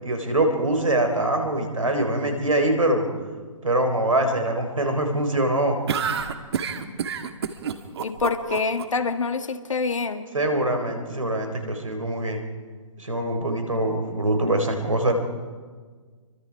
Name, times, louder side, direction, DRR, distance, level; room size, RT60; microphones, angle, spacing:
voice 1, 0.0-3.1 3.6-5.8 10.3-12.4 13.0-15.1, right 1 dB, 85° right, 5 dB, 4.3 m, -23 dB
sound 1, 5.9-8.8, right 7 dB, 55° right, 1.7 m, -28 dB
voice 2, 8.0-10.3, left 4 dB, 75° left, 9 dB, 1.8 m, -26 dB
28.0 x 24.0 x 4.8 m, 1.5 s
figure-of-eight pair, 135°, 17 cm